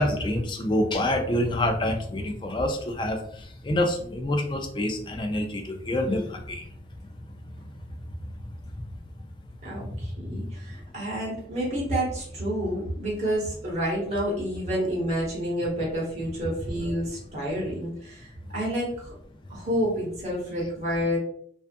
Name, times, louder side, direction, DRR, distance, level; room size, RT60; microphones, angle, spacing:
voice 1, 0.0-3.2 3.6-6.6, left 1 dB, 25° left, 4 dB, 0.3 m, -26 dB
voice 2, 9.6-19.1 19.5-21.2, equal, 35° right, -5 dB, 1.1 m, -29 dB
2.5 x 2.3 x 2.5 m, 0.63 s
head